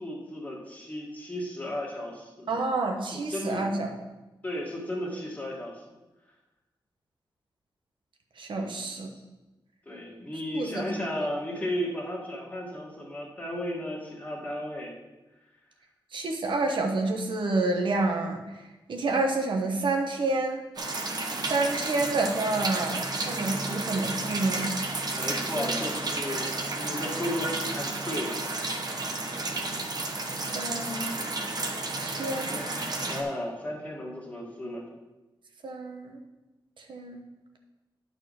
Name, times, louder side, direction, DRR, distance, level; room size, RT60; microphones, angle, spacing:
voice 1, 0.0-2.5 3.1-3.8 4.4-5.8 8.5-8.8 9.1-9.2 9.8-14.9 25.1-29.0 32.2-34.8, left 1 dB, 20° left, -2 dB, 1.8 m, -35 dB
voice 2, 2.5-3.9 8.4-9.1 10.5-10.8 16.1-18.4 18.9-20.6 21.4-24.7 25.6-25.7 30.4-31.1 32.0-32.5 35.6-36.2 36.9-37.2, right 2 dB, 75° right, 3 dB, 1.1 m, -28 dB
sound 1, 20.8-33.2, right 2 dB, 50° right, 1.0 m, -32 dB
9.3 x 4.1 x 6.3 m, 1.1 s
wide cardioid pair, 120°, 8 cm